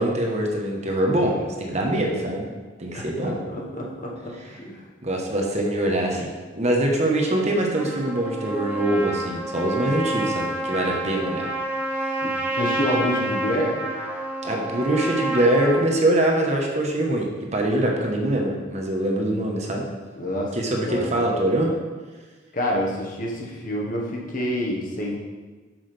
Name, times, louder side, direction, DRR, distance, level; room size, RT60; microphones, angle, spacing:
voice 1, 0.0-2.5 2.8-3.4 4.4-4.6 5.0-11.5 14.4-19.8 20.5-21.7, right 1 dB, 40° right, 0 dB, 1.1 m, -23 dB
voice 2, 2.9-4.8 12.2-13.8 20.2-20.5 20.8-21.1 22.5-25.1, equal, 50° left, -2 dB, 1.3 m, -28 dB
Trumpet, 7.7-15.8, right 1 dB, 10° right, 1.1 m, -29 dB
7.9 x 6.3 x 3.4 m, 1.4 s
head